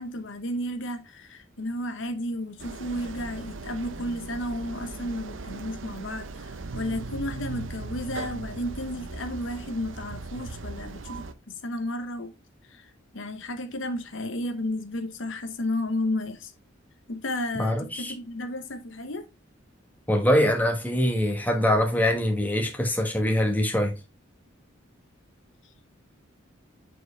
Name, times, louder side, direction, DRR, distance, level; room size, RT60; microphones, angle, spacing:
voice 1, 0.0-6.4 6.7-12.3 12.7-12.9 13.1-16.5 17.1-19.2, left 1 dB, 70° left, 0.9 m, -32 dB
sound 1, 2.6-11.3, right 3 dB, 75° right, 0.7 m, -38 dB
voice 2, 17.5-18.1 20.1-23.9, left 1 dB, 10° left, 1.3 m, -23 dB
7.6 x 4.5 x 3.3 m
head